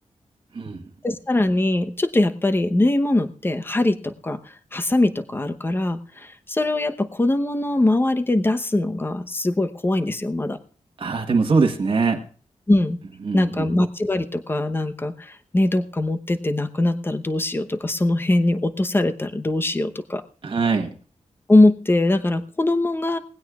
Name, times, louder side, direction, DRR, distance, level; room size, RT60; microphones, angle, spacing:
voice 1, 0.5-0.9 11.0-12.2 13.2-13.7 20.4-20.9, right 4 dB, 45° right, 2 dB, 1.3 m, -22 dB
voice 2, 1.0-4.4 4.7-10.6 12.7-13.0 13.3-20.2 21.5-23.2, left 2 dB, 20° left, 8 dB, 0.9 m, -21 dB
19.5 x 16.0 x 2.4 m, 0.43 s
wide cardioid pair, 160°, 12 cm